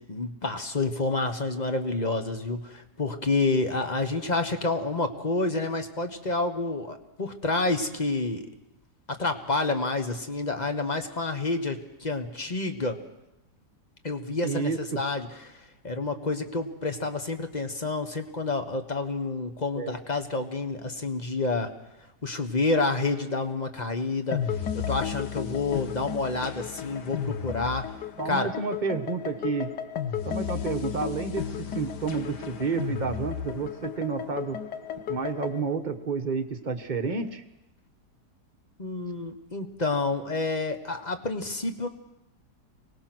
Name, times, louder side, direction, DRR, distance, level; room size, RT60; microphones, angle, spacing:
voice 1, 0.0-8.5 9.1-13.0 14.0-21.7 22.2-27.8 28.2-28.5 38.8-41.9, left 3 dB, 30° left, 7 dB, 1.3 m, -29 dB
voice 2, 14.4-15.0 19.7-19.9 28.2-29.7 30.2-34.6 35.1-37.4, right 5 dB, 30° right, 6 dB, 1.2 m, -30 dB
sound 1, 24.3-35.6, left 8 dB, 90° left, 1.7 m, -34 dB
24.0 x 19.0 x 6.1 m, 0.91 s
omnidirectional pair, 1.7 m